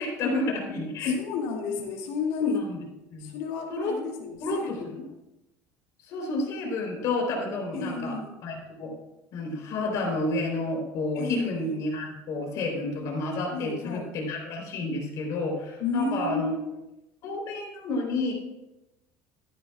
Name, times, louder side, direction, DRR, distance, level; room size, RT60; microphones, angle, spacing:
voice 1, 0.0-1.2 2.4-2.8 3.1-3.3 3.7-4.0 4.4-5.0 6.1-8.1 8.4-8.9 9.3-16.5 17.2-18.3, left 2 dB, 55° left, 0 dB, 3.7 m, -30 dB
voice 2, 1.0-2.6 3.2-5.0 7.7-8.3 11.1-11.8 13.5-14.2 15.8-16.8, left 4 dB, 85° left, 0 dB, 2.3 m, -32 dB
13.5 x 11.0 x 2.4 m, 0.97 s
cardioid pair, 130°, 7 cm